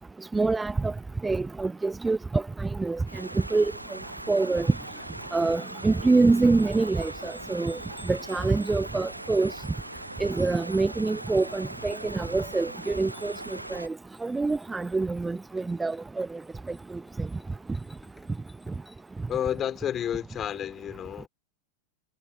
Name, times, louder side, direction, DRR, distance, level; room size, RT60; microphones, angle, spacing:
voice 1, 0.3-0.9 1.2-3.7 4.3-4.7 5.3-7.8 8.1-9.5 10.2-13.3 13.7-13.9 14.2-16.3, right 3 dB, 10° right, 0.6 m, -25 dB
sound 1, 3.1-13.9, right 1 dB, 85° right, 0.6 m, -40 dB
sound 2, 4.0-19.6, left 3 dB, 10° left, 8.0 m, -58 dB
voice 2, 19.3-21.3, left 10 dB, 25° left, 4.3 m, -30 dB
figure-of-eight pair, 90°, 0 cm